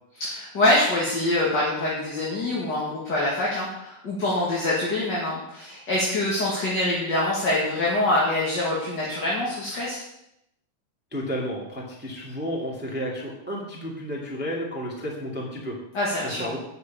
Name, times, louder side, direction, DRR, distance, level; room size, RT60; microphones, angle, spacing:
voice 1, 0.2-10.0 15.9-16.6, left 1 dB, 35° left, -6 dB, 2.4 m, -25 dB
voice 2, 11.1-15.8 16.2-16.6, equal, 5° right, -2 dB, 1.6 m, -32 dB
9.6 x 6.3 x 7.4 m, 0.83 s
omnidirectional pair, 3.6 m